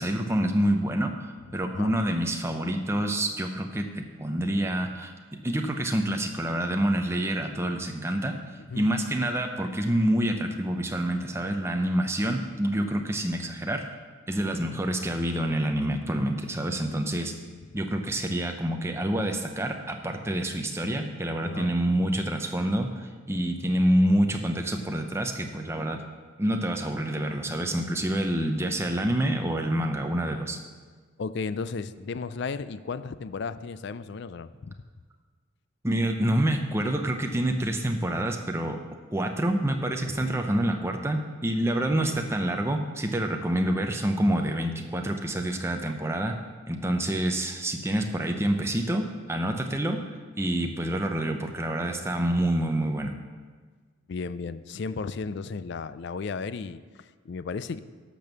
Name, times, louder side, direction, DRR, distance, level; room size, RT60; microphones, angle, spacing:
voice 1, 0.0-5.1 5.4-8.4 8.8-13.8 14.3-17.3 17.7-26.0 26.4-30.6 35.8-38.8 39.1-46.4 46.7-50.0 50.4-53.1, right 1 dB, 10° right, 4 dB, 0.7 m, -27 dB
voice 2, 1.5-1.9 8.7-8.9 14.7-14.8 21.4-21.8 31.2-34.7 40.1-40.4 54.1-57.8, left 4 dB, 55° left, 14 dB, 0.4 m, -34 dB
12.0 x 5.3 x 6.8 m, 1.5 s
head